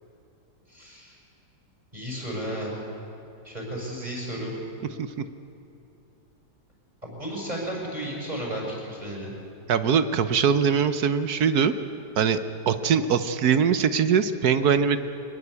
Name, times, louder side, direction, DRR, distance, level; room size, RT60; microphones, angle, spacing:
voice 1, 0.7-1.2 1.9-2.8 3.4-4.6 7.0-9.3, right 1 dB, 20° right, -2 dB, 6.8 m, -33 dB
voice 2, 9.7-11.7 12.2-12.4 12.7-15.0, right 7 dB, 60° right, 11 dB, 1.3 m, -22 dB
23.0 x 21.0 x 8.3 m, 2.8 s
omnidirectional pair, 2.0 m